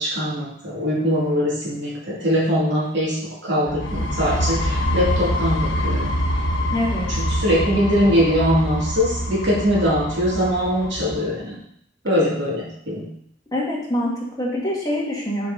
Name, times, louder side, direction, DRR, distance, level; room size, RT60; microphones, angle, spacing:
voice 1, 0.0-3.2 3.4-6.1 7.1-11.6 12.0-13.1, equal, 65° right, -6 dB, 2.9 m, -22 dB
sound 1, 3.7-11.3, equal, 75° left, 1.0 m, -25 dB
voice 2, 6.7-7.1 13.5-15.5, left 1 dB, 20° left, -5 dB, 2.0 m, -25 dB
6.7 x 5.2 x 4.0 m, 0.69 s
head